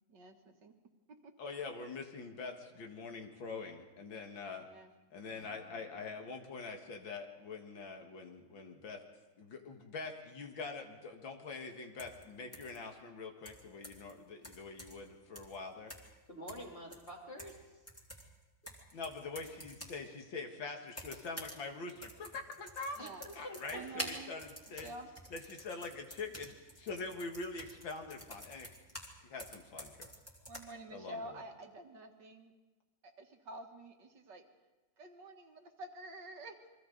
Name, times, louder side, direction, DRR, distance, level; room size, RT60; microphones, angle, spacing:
voice 1, 0.1-0.7 1.1-1.3 4.7-4.9 23.0-23.3 23.7-24.3 24.8-25.1 30.5-32.5 33.0-34.4 35.0-36.6, right 2 dB, 65° right, 4 dB, 2.1 m, -49 dB
voice 2, 1.4-4.7 5.1-9.0 9.4-15.9 18.9-23.0 23.4-24.9 25.3-28.7 29.2-30.1 30.9-31.4, left 4 dB, 80° left, 3 dB, 2.5 m, -44 dB
Acoustic guitar / Strum, 5.4-9.0, equal, 50° left, 6.3 m, -66 dB
sound 1, 12.0-12.2 12.5-12.8 13.5-14.1 14.4-15.1 15.4-15.6 15.9-16.2 16.5-17.6 17.9-20.0 20.9-21.6 21.9-29.1 29.4-30.6, equal, 5° left, 2.7 m, -49 dB
voice 3, 16.3-17.6 23.0-24.1, equal, 25° left, -2 dB, 3.6 m, -47 dB
28.5 x 23.0 x 4.0 m, 1.2 s
omnidirectional pair, 2.1 m